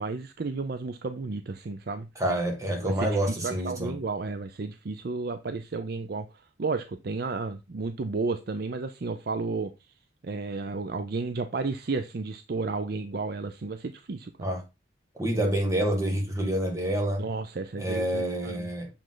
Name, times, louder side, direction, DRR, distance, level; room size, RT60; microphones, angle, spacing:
voice 1, 0.0-2.1 2.8-9.7 10.2-14.5 15.3-15.5 17.2-18.7, right 3 dB, 50° right, 0.5 m, -32 dB
voice 2, 2.2-3.9 14.4-14.6 15.2-17.2 17.8-18.9, right 1 dB, 15° right, 1.8 m, -27 dB
7.1 x 5.1 x 3.9 m
head